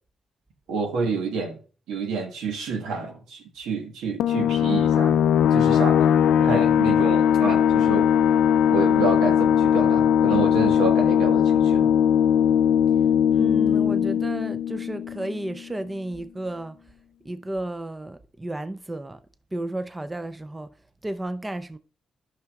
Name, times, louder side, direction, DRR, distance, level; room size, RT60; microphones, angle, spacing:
voice 1, 0.7-1.6 1.9-5.2 5.5-6.0 6.4-8.1 8.7-11.9, right 4 dB, 90° right, 1.3 m, -28 dB
sound 1, 4.2-15.5, left 9 dB, 85° left, 0.3 m, -20 dB
voice 2, 13.3-16.8 17.2-19.2 19.5-20.7 21.0-21.8, right 1 dB, 15° right, 0.5 m, -32 dB
13.5 x 5.8 x 2.3 m
cardioid pair, 80°, 0 cm